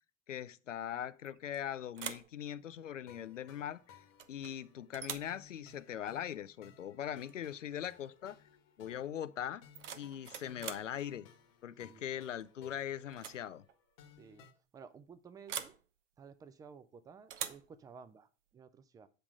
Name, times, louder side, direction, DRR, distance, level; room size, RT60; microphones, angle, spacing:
voice 1, 0.3-8.4 8.8-9.7 10.0-11.3 11.6-13.6, left 10 dB, 80° left, 0.5 m, -41 dB
sound 1, 1.2-1.6 1.9-2.3 4.2-4.5 4.9-5.4 7.2-7.4 7.7-8.1 9.5-10.9 12.4-12.7 13.1-13.4 13.7-13.8 15.5-15.8 17.3-17.7, right 9 dB, 70° right, 0.8 m, -44 dB
sound 2, 3.1-14.5, left 7 dB, 50° left, 1.3 m, -61 dB
voice 2, 8.8-9.1 11.8-12.1 14.2-14.5 14.7-15.7 16.2-19.1, right 6 dB, 10° right, 0.3 m, -55 dB
7.7 x 3.5 x 6.2 m
figure-of-eight pair, 80°, 38 cm